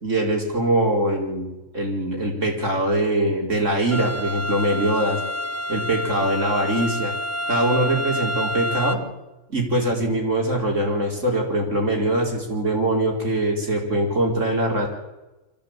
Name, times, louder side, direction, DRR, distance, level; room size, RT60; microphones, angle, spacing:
voice 1, 0.0-5.2 5.7-7.1 7.5-9.0 9.5-14.9, right 1 dB, 70° right, 1 dB, 5.2 m, -22 dB
sound 1, 3.9-8.9, left 1 dB, 15° right, 1.1 m, -28 dB
24.5 x 15.5 x 9.0 m, 1.0 s
omnidirectional pair, 1.3 m